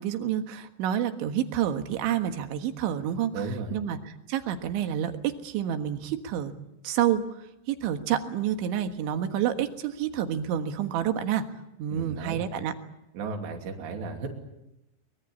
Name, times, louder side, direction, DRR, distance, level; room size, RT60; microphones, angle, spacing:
voice 1, 0.0-3.3 3.7-4.0 4.3-6.5 6.8-11.5 11.8-12.7, right 10 dB, 90° right, 7 dB, 3.9 m, -28 dB
voice 2, 3.3-3.8 11.9-12.4 13.1-14.3, right 4 dB, 70° right, 2 dB, 4.9 m, -34 dB
24.0 x 23.0 x 8.6 m, 0.89 s
omnidirectional pair, 5.2 m